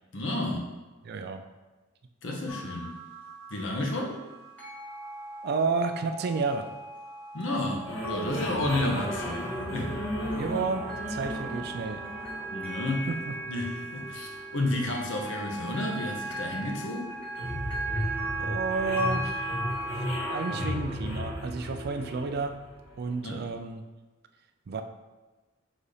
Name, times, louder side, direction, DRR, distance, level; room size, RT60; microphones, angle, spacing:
voice 1, 0.1-0.7 2.2-2.9 3.5-4.2 7.3-9.4 9.7-10.0 12.5-13.1 13.5-17.1 23.2-23.4, left 1 dB, 65° left, 1 dB, 0.8 m, -31 dB
voice 2, 1.0-1.4 5.4-6.7 10.4-12.0 13.1-13.4 18.4-20.0 20.3-22.6 23.0-23.8 24.7-24.8, right 4 dB, 50° right, 7 dB, 0.3 m, -31 dB
sound 1, 2.5-20.7, right 2 dB, 5° left, 1.3 m, -38 dB
sound 2, 7.8-23.3, equal, 85° left, 1.3 m, -36 dB
sound 3, 17.8-22.6, right 4 dB, 15° right, 1.4 m, -48 dB
4.1 x 2.7 x 4.8 m, 1.2 s
head